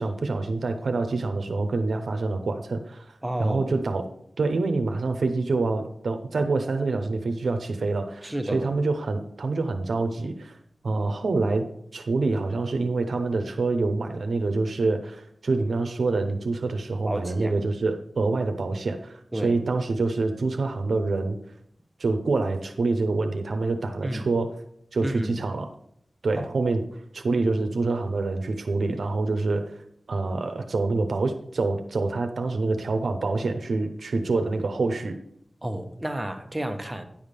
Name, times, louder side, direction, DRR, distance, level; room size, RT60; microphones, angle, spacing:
voice 1, 0.0-3.1 3.4-4.1 4.4-10.6 10.8-11.7 11.9-21.4 22.0-24.5 24.9-25.7 26.2-26.8 27.1-29.7 30.1-35.1, right 3 dB, 85° right, 7 dB, 0.7 m, -26 dB
voice 2, 3.2-3.8 8.2-8.7 17.0-17.5 19.3-19.6 24.0-24.3 25.0-25.3 26.3-26.5 35.6-37.1, right 1 dB, 20° right, 5 dB, 0.9 m, -31 dB
10.0 x 3.6 x 6.6 m, 0.73 s
wide cardioid pair, 60°, 0 cm